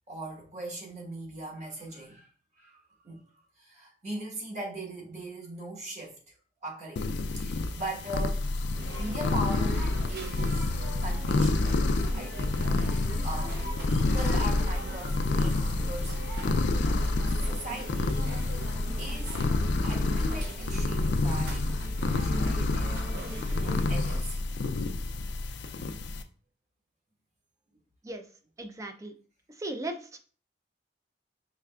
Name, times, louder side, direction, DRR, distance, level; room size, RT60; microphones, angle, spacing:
voice 1, 0.1-2.3 2.6-3.2 3.6-6.2 6.6-8.4 9.0-10.7 11.0-11.8 12.1-13.6 13.8-16.2 16.6-18.3 19.0-19.4 19.8-21.7 22.2-24.5, right 1 dB, 40° right, 1.2 m, -40 dB
sound 1, 7.0-26.2, left 2 dB, 65° left, 0.4 m, -28 dB
sound 2, 8.7-24.2, right 1 dB, 60° right, 0.7 m, -39 dB
voice 2, 28.6-29.1 29.6-30.2, right 2 dB, 15° right, 0.4 m, -37 dB
4.8 x 3.2 x 2.3 m
head